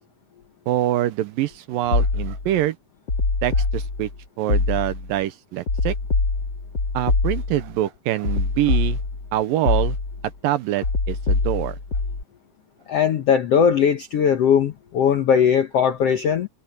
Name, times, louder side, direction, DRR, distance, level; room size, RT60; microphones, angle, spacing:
voice 1, 0.7-2.8 3.4-4.1 4.4-6.0 6.9-9.0 9.3-10.0 10.4-11.8, right 14 dB, 75° right, 2.4 m, -24 dB
sound 1, 1.9-2.5 3.1-4.2 4.5-5.1 5.7-7.7 8.2-9.3 9.7-10.3 10.8-12.2, left 3 dB, 30° left, 3.2 m, -23 dB
voice 2, 12.9-16.5, left 7 dB, 80° left, 1.4 m, -19 dB
omnidirectional pair, 4.4 m